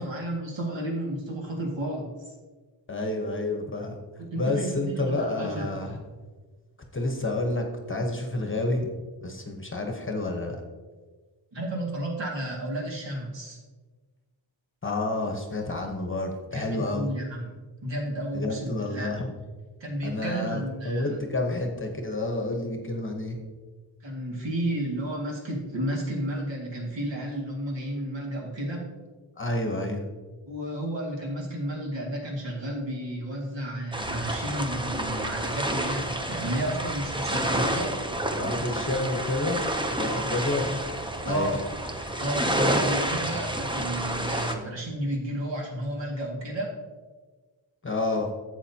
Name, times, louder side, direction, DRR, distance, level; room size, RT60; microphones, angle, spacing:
voice 1, 0.0-2.3 4.2-5.7 11.5-13.6 16.5-17.5 17.8-19.1 19.8-21.2 24.0-28.9 30.5-37.9 40.0-40.3 40.7-40.8 41.2-41.9 42.2-46.7, right 1 dB, 60° right, -2 dB, 2.2 m, -32 dB
voice 2, 2.9-4.0 4.4-6.0 6.9-8.9 9.2-10.6 14.8-17.1 18.3-19.3 20.0-23.4 29.4-30.0 38.4-39.6 39.9-40.7 41.3-41.6 47.8-48.3, left 2 dB, 25° left, 2 dB, 1.0 m, -29 dB
sound 1, 33.9-44.5, right 1 dB, 10° right, 0.6 m, -29 dB
12.0 x 7.9 x 2.8 m, 1.4 s
wide cardioid pair, 135°, 49 cm